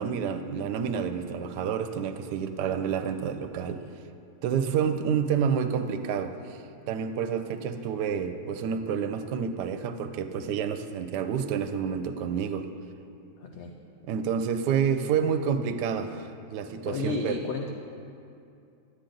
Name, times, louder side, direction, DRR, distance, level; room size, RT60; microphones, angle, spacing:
voice 1, 0.0-3.8 4.4-6.6 6.9-12.7 14.1-17.4, right 7 dB, 80° right, 9 dB, 1.2 m, -29 dB
voice 2, 13.4-13.7 16.9-17.7, left 4 dB, 75° left, 2 dB, 0.6 m, -32 dB
10.0 x 8.6 x 3.9 m, 2.5 s
omnidirectional pair, 1.8 m